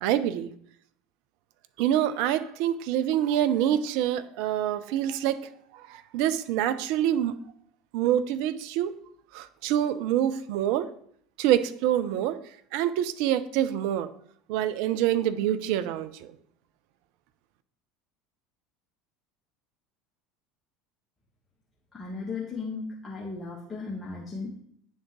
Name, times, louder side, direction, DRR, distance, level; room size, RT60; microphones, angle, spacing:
voice 1, 0.0-0.5 1.8-7.4 7.9-8.9 9.3-10.9 11.4-12.4 12.7-14.1 14.5-16.4, right 11 dB, 55° right, 13 dB, 0.4 m, -26 dB
voice 2, 21.9-24.6, left 4 dB, 15° left, -4 dB, 1.1 m, -36 dB
9.6 x 3.7 x 3.0 m, 0.64 s
figure-of-eight pair, 70°, 0 cm